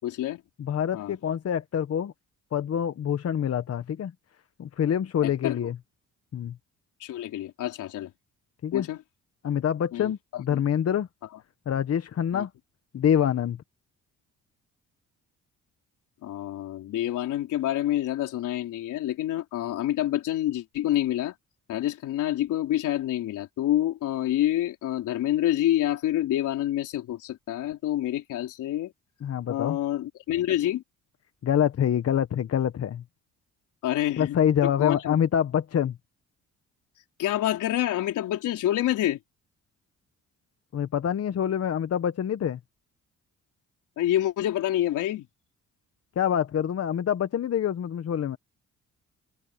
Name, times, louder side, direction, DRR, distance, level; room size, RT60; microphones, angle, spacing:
voice 1, 0.0-0.4 0.9-1.1 5.2-5.6 7.0-8.1 8.7-9.0 9.9-10.1 10.5-10.6 12.3-12.4 16.2-21.3 21.7-28.9 29.5-30.8 33.8-34.4 34.6-35.1 37.2-39.2 44.0-45.3, left 13 dB, 85° left, 3.9 m, -27 dB
voice 2, 0.6-2.1 2.5-4.1 4.6-5.8 6.3-6.6 8.6-8.9 9.4-11.1 11.7-12.5 12.9-13.6 29.2-29.8 31.4-33.0 34.2-36.0 40.7-42.6 46.1-48.4, left 9 dB, 55° left, 1.2 m, -26 dB
cardioid pair, 90°, 30 cm